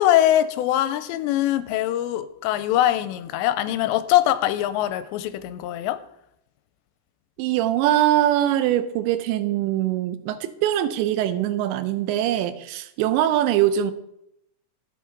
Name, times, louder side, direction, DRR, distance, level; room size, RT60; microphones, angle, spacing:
voice 1, 0.0-6.0, left 13 dB, 85° left, 12 dB, 2.7 m, -22 dB
voice 2, 7.4-13.9, right 12 dB, 85° right, 12 dB, 3.0 m, -22 dB
14.0 x 8.4 x 3.9 m, 0.81 s
omnidirectional pair, 5.1 m